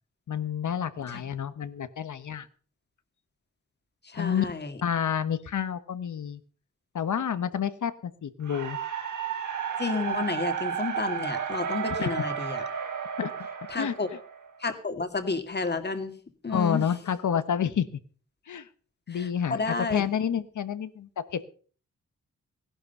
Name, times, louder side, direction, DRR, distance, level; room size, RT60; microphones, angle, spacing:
voice 1, 0.3-2.5 4.1-4.4 4.8-6.4 6.9-8.8 12.0-12.1 13.2-13.3 13.8-13.9 16.5-17.9 18.5-18.7 19.1-21.5, left 8 dB, 70° left, 13 dB, 1.2 m, -29 dB
voice 2, 4.0-4.7 9.8-12.6 13.7-14.1 14.6-16.1 16.4-16.9 19.1-20.1, left 4 dB, 35° left, 8 dB, 2.1 m, -31 dB
sound 1, 8.5-14.6, right 7 dB, 70° right, 2.6 m, -32 dB
17.0 x 11.5 x 5.5 m, 0.43 s
wide cardioid pair, 105°, 31 cm